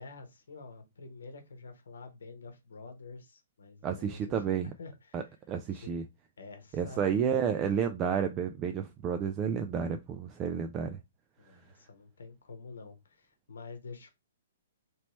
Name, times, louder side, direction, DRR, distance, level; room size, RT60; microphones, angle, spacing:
voice 1, 0.0-5.2 5.7-6.0 6.4-7.2 11.4-14.1, left 4 dB, 80° left, 0.9 m, -48 dB
voice 2, 3.8-4.7 5.1-6.0 6.7-11.0, right 7 dB, 25° right, 0.3 m, -31 dB
3.0 x 3.0 x 3.0 m
hypercardioid pair, 135°, 0 cm